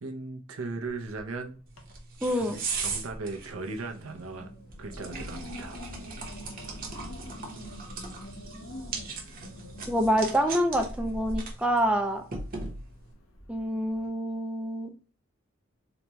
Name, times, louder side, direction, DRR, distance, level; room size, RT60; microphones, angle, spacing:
voice 1, 0.0-1.6 2.4-4.5 4.8-5.8, right 3 dB, 90° right, 0.7 m, -37 dB
Wind, 0.9-1.3 1.7-2.2 2.6-14.0, equal, 70° left, 0.8 m, -44 dB
sound 1, 1.7-13.1, right 4 dB, 45° right, 0.9 m, -40 dB
voice 2, 2.2-2.6 9.9-12.2 13.5-14.9, equal, 5° right, 0.4 m, -26 dB
4.0 x 2.3 x 3.0 m
head